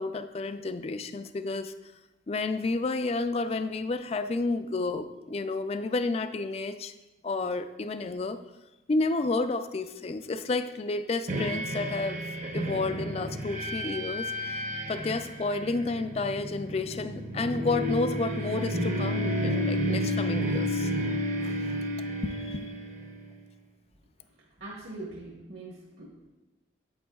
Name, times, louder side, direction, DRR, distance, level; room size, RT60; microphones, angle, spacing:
voice 1, 0.0-1.7 2.3-6.9 7.2-8.4 8.9-12.2 12.5-14.3 14.9-20.9 21.4-21.6 22.2-22.7, left 3 dB, 35° left, 11 dB, 0.3 m, -31 dB
sound 1, 11.3-23.3, equal, 40° right, 0.7 m, -31 dB
voice 2, 24.4-26.1, right 2 dB, 65° right, -2 dB, 1.2 m, -42 dB
9.5 x 7.6 x 2.3 m, 1.1 s
head